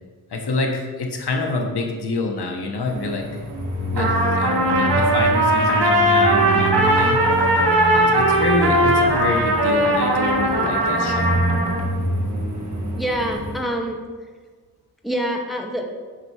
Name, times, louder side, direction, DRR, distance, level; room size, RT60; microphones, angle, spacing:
voice 1, 0.3-3.3 3.9-7.2 7.9-11.4, left 3 dB, 90° left, 2 dB, 1.3 m, -27 dB
sound 1, 2.8-13.6, right 1 dB, 45° right, 1.8 m, -27 dB
Trumpet, 4.0-11.8, right 1 dB, 80° right, 1.8 m, -19 dB
voice 2, 13.0-14.0 15.0-15.8, equal, ahead, 1 dB, 1.0 m, -25 dB
8.7 x 5.6 x 4.8 m, 1.5 s
wide cardioid pair, 100°, 38 cm